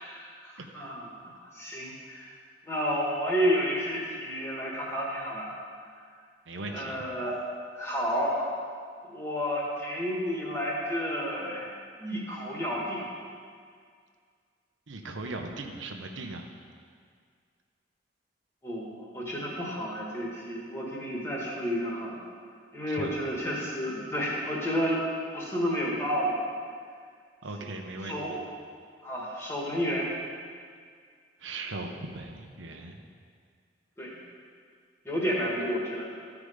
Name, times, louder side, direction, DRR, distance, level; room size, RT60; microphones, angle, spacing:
voice 1, 0.0-2.3 2.7-5.5 6.7-7.4 7.7-8.5 9.0-11.7 12.0-13.1 18.6-22.2 22.7-25.0 25.3-26.4 27.6-27.7 28.0-28.4 29.0-30.1 34.0-34.2 35.0-36.1, equal, 15° left, -4 dB, 1.6 m, -31 dB
voice 2, 6.5-7.1 14.9-16.4 22.9-23.1 27.4-28.4 31.4-33.0, right 2 dB, 90° right, 3 dB, 0.9 m, -38 dB
13.0 x 4.9 x 5.0 m, 2.1 s
head